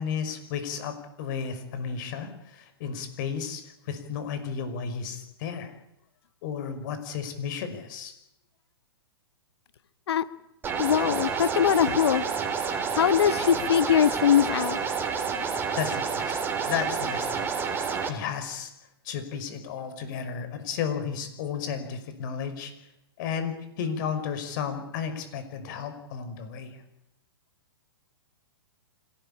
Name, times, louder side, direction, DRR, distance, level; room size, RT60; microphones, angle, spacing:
voice 1, 0.0-5.7 6.4-8.1 15.8-16.3 16.7-17.5 18.1-18.7 19.0-22.7 23.2-26.8, left 7 dB, 50° left, 9 dB, 5.7 m, -33 dB
sound 1, 10.6-18.1, right 6 dB, 15° right, 3.5 m, -29 dB
voice 2, 10.8-12.2 12.9-14.8, left 9 dB, 75° left, 15 dB, 1.2 m, -22 dB
26.0 x 18.5 x 8.7 m, 0.84 s
hypercardioid pair, 135°, 13 cm